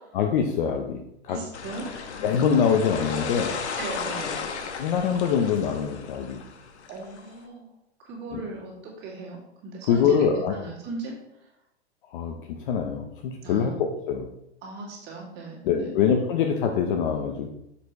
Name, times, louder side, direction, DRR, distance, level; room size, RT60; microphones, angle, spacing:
voice 1, 0.2-1.4 2.2-3.6 4.7-6.4 8.3-8.4 9.9-10.5 12.1-14.3 15.6-17.5, left 7 dB, 50° left, 3 dB, 0.8 m, -24 dB
voice 2, 1.3-1.9 3.8-4.4 6.9-7.7 8.0-10.2 10.5-11.1 13.4-13.8 14.6-15.9, right 4 dB, 30° right, -2 dB, 2.4 m, -37 dB
sound 1, 1.5-7.3, left 5 dB, 75° left, 1.2 m, -35 dB
7.0 x 4.9 x 4.7 m, 0.82 s
hypercardioid pair, 155°, 34 cm